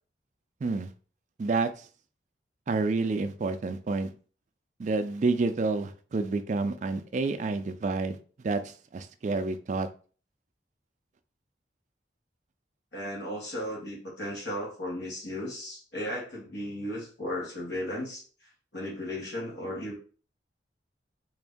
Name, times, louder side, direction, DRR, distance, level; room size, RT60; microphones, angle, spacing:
voice 1, 1.4-1.7 2.7-4.1 4.8-8.2 8.4-8.6 8.9-9.9, right 3 dB, 40° right, 9 dB, 0.3 m, -28 dB
voice 2, 12.9-20.0, left 1 dB, 75° left, -3 dB, 1.2 m, -35 dB
3.8 x 2.5 x 3.5 m, 0.39 s
head